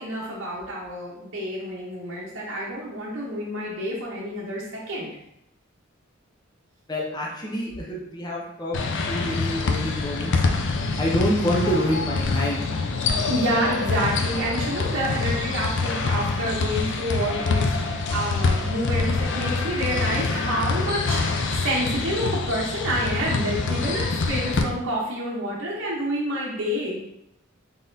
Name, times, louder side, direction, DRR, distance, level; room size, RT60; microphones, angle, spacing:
voice 1, 0.0-5.1 13.3-27.0, equal, 60° right, -6 dB, 0.8 m, -28 dB
voice 2, 6.9-8.8 9.0-10.3 11.0-12.6, equal, 20° left, -3 dB, 0.7 m, -27 dB
sound 1, 8.7-24.6, left 4 dB, 60° left, 0.4 m, -25 dB
3.9 x 3.6 x 2.6 m, 0.80 s
head